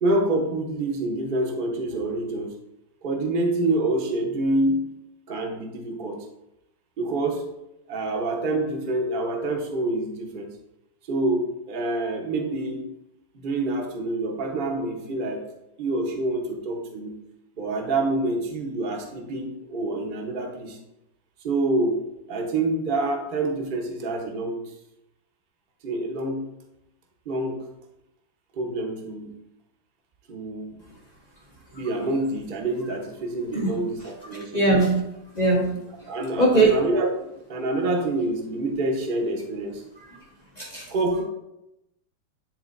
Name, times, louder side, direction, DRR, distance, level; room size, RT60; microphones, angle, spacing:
voice 1, 0.0-2.5 3.0-4.9 5.3-6.2 7.0-7.4 7.9-10.5 11.1-12.9 13.3-15.5 15.8-17.2 17.6-20.8 21.4-22.0 22.3-24.6 25.8-26.5 27.3-27.7 28.5-29.3 30.3-30.8 31.7-34.6 36.1-39.8 40.9-41.2, right 2 dB, 40° right, 1 dB, 0.7 m, -27 dB
voice 2, 34.5-35.0 35.3-36.1 36.4-36.8 40.6-40.9, right 2 dB, 45° left, -3 dB, 0.5 m, -21 dB
10.5 x 3.7 x 2.6 m, 0.87 s
omnidirectional pair, 2.3 m